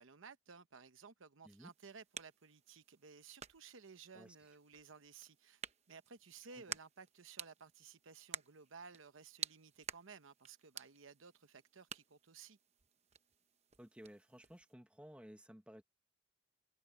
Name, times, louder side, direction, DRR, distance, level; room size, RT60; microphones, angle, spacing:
voice 1, 0.0-5.6 5.9-12.6, right 5 dB, 90° right, 0.9 m, -57 dB
sound 1, 1.5-14.7, right 8 dB, 35° right, 0.9 m, -52 dB
voice 2, 13.8-15.8, equal, 5° right, 1.4 m, -56 dB
head